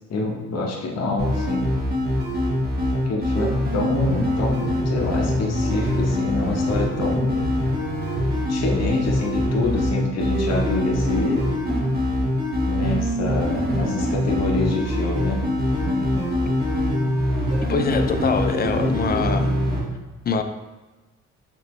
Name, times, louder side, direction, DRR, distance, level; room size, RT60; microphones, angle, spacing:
voice 1, 0.1-1.7 3.0-7.3 8.5-11.5 12.7-15.4, left 2 dB, 55° left, -1 dB, 1.0 m, -26 dB
sound 1, 1.2-19.8, left 1 dB, 30° right, 1.4 m, -23 dB
voice 2, 17.7-19.5 20.3-20.4, left 5 dB, 30° left, 7 dB, 0.4 m, -24 dB
5.3 x 3.0 x 3.1 m, 1.2 s
cardioid pair, 90°, 30 cm